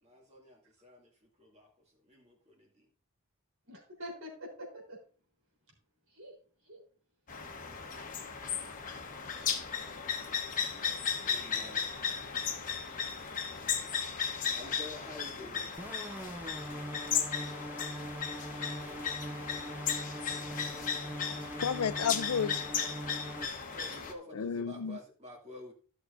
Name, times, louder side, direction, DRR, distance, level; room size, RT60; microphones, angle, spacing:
voice 1, 0.0-2.9 11.2-12.2 14.5-15.7 23.7-25.7, left 1 dB, 30° right, 2.5 m, -50 dB
voice 2, 3.7-5.0 6.1-6.3 6.7-6.8 7.8-8.0, equal, 65° right, 3.9 m, -46 dB
sound 1, 7.3-24.1, left 7 dB, 35° left, 1.2 m, -36 dB
sound 2, 15.8-23.5, right 1 dB, 10° right, 0.3 m, -42 dB
voice 3, 21.3-22.7 24.3-25.0, left 7 dB, 85° left, 0.5 m, -32 dB
14.5 x 6.4 x 2.6 m
head